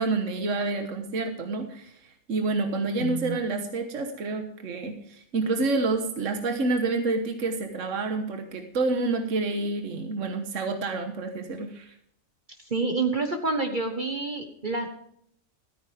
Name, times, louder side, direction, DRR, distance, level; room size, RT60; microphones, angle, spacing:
voice 1, 0.0-11.9, right 3 dB, 70° right, 5 dB, 1.6 m, -28 dB
voice 2, 3.0-3.4 12.7-14.9, right 3 dB, 40° right, 4 dB, 1.4 m, -28 dB
14.5 x 14.0 x 3.5 m, 0.69 s
omnidirectional pair, 1.3 m